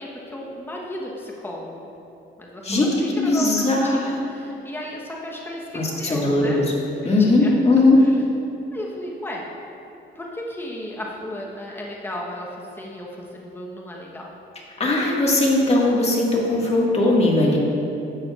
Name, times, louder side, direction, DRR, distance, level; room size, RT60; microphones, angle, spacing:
voice 1, 0.0-1.9 2.4-3.7 4.0-6.6 7.0-7.6 8.0-8.1 8.7-9.5 10.1-14.3, left 1 dB, 10° left, -3 dB, 1.1 m, -34 dB
voice 2, 2.6-4.0 5.7-6.6 7.0-8.0 14.8-17.6, left 2 dB, 30° left, -3 dB, 1.9 m, -19 dB
12.0 x 7.9 x 2.5 m, 2.9 s
cardioid pair, 90°, 20 cm